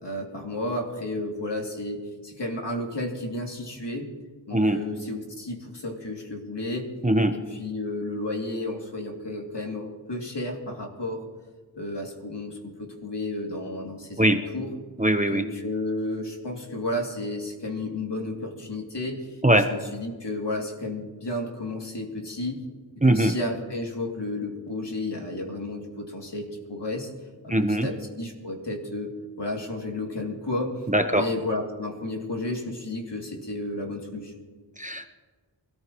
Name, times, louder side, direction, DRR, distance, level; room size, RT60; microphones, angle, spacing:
voice 1, 0.0-4.1 4.5-6.9 7.3-11.3 11.7-14.7 15.3-22.6 23.1-27.1 27.4-27.5 27.8-29.1 29.4-30.8 31.1-34.3, left 2 dB, 65° left, 0 dB, 2.7 m, -32 dB
voice 2, 7.0-7.4 14.2-14.4 15.0-15.5 19.4-19.7 23.0-23.3 27.5-27.9 30.9-31.3 34.8-35.1, right 1 dB, 15° right, 7 dB, 0.9 m, -21 dB
24.0 x 14.0 x 3.1 m, 1.4 s
wide cardioid pair, 60°, 45 cm